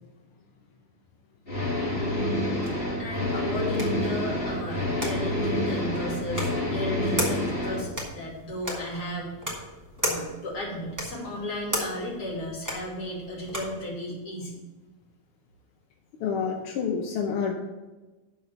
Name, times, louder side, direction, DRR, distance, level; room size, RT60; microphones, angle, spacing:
sound 1, 1.5-7.8, left 1 dB, 25° left, 2.4 m, -28 dB
voice 1, 3.0-9.3 10.0-14.6, left 1 dB, 45° left, -4 dB, 3.2 m, -34 dB
sound 2, 3.1-13.8, equal, 10° right, 1.8 m, -36 dB
voice 2, 16.2-17.6, left 6 dB, 80° left, 1 dB, 1.8 m, -28 dB
12.0 x 4.1 x 6.7 m, 1.2 s
omnidirectional pair, 2.4 m